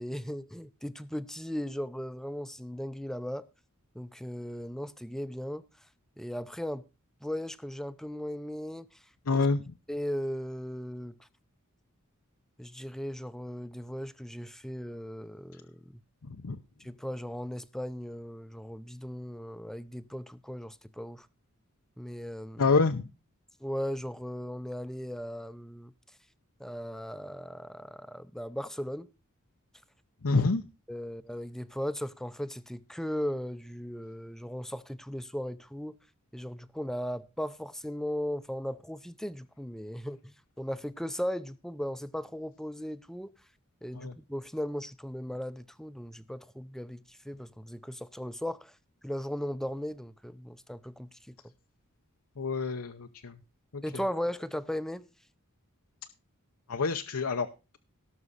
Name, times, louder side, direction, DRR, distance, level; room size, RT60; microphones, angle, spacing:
voice 1, 0.0-3.4 3.9-5.6 6.2-6.8 7.2-8.9 9.3-9.5 9.9-11.2 12.6-16.0 16.8-21.3 22.0-22.7 23.6-25.9 26.6-29.1 30.9-36.0 36.3-43.3 43.8-48.7 49.0-51.3 53.8-55.1, equal, ahead, 0.6 m, -37 dB
voice 2, 9.3-9.7 16.3-16.6 22.6-23.0 30.2-30.6 44.0-44.1 52.4-53.3 53.7-53.8 56.7-57.5, left 4 dB, 85° left, 0.8 m, -27 dB
18.0 x 6.2 x 4.1 m
head